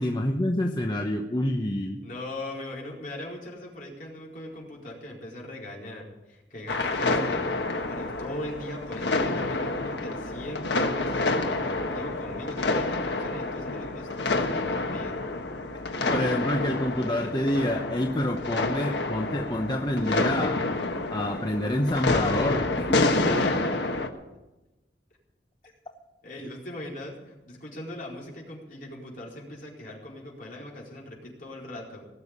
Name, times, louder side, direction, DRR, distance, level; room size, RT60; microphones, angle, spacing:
voice 1, 0.0-2.0 16.1-20.6 21.1-23.1, left 1 dB, 25° left, 2 dB, 0.9 m, -27 dB
voice 2, 2.0-7.5 7.7-15.2 23.1-24.0 26.2-32.0, left 1 dB, 50° left, -3 dB, 4.5 m, -40 dB
sound 1, 6.7-24.1, left 2 dB, 80° left, 1.4 m, -28 dB
18.5 x 7.1 x 9.7 m, 1.0 s
head